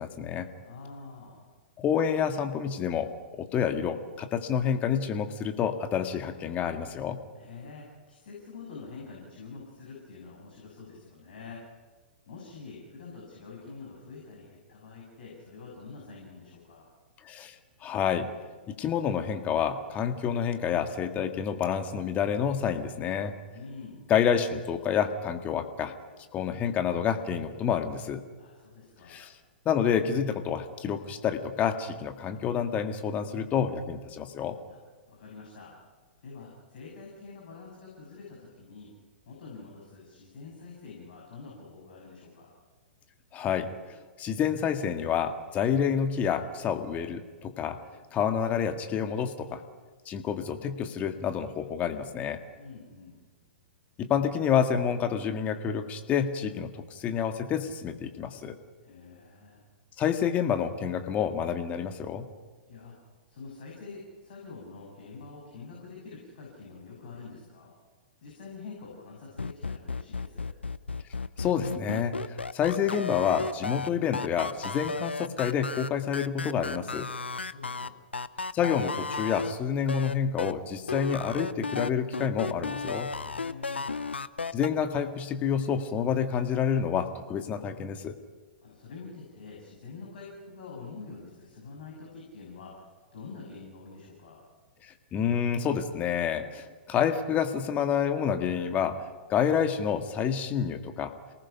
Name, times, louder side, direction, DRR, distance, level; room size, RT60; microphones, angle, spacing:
voice 1, 0.0-0.5 1.8-3.1 3.4-7.2 17.2-17.6 17.8-18.3 18.7-23.3 24.1-25.9 26.3-28.2 29.1-29.3 29.7-34.6 43.3-43.7 44.2-47.8 48.1-49.6 50.1-52.4 54.0-58.6 60.0-62.3 71.4-77.1 78.5-83.1 84.5-88.1 94.8-99.0 99.3-101.1, left 8 dB, 25° left, 7 dB, 1.8 m, -28 dB
voice 2, 0.6-1.5 7.3-11.6 12.3-16.9 23.5-24.0 28.4-29.3 34.7-34.8 35.1-35.7 36.2-38.9 39.2-42.5 52.6-53.2 58.8-59.6 62.7-62.9 63.3-67.7 68.2-70.5 77.1-78.0 83.2-83.9 88.6-92.8 93.1-94.4, left 4 dB, 55° left, -2 dB, 6.6 m, -46 dB
sound 1, 69.4-79.5 79.9-80.5 80.9-84.7, left 4 dB, 80° left, 0.7 m, -33 dB
28.0 x 19.0 x 5.8 m, 1.4 s
figure-of-eight pair, 110°, 6 cm